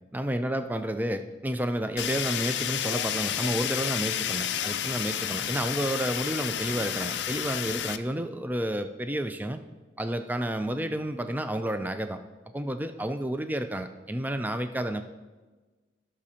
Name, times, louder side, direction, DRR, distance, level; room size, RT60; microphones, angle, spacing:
voice 1, 0.1-9.6 10.0-12.2 12.5-15.0, right 1 dB, 10° right, 8 dB, 0.4 m, -30 dB
Fire, 2.0-8.0, left 10 dB, 65° left, 0.4 m, -31 dB
17.0 x 6.2 x 2.9 m, 1.3 s
head